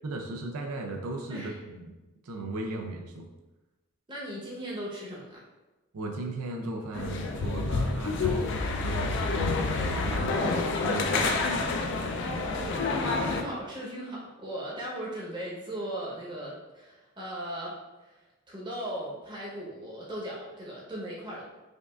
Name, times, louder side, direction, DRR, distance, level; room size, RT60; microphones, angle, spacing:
voice 1, 0.0-1.9 2.2-3.3 5.9-11.5, right 2 dB, 85° right, 1 dB, 0.5 m, -36 dB
voice 2, 4.1-5.4 11.9-12.3 12.6-12.8 13.2-17.7 18.5-21.4, right 1 dB, 20° right, -6 dB, 0.8 m, -38 dB
sound 1, 6.9-13.4, left 3 dB, 55° left, 0.4 m, -28 dB
5.1 x 2.4 x 2.4 m, 1.1 s
head